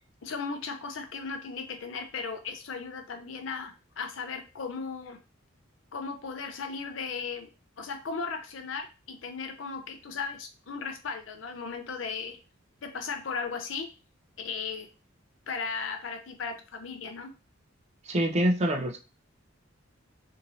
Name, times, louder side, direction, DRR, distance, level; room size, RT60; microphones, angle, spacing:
voice 1, 0.0-5.2 5.9-7.5 7.8-12.4 12.8-13.9 14.4-14.9 15.5-17.3, left 5 dB, 75° left, 7 dB, 0.5 m, -36 dB
voice 2, 18.0-19.0, right 1 dB, 35° right, 4 dB, 0.5 m, -25 dB
2.9 x 2.7 x 2.6 m, 0.33 s
head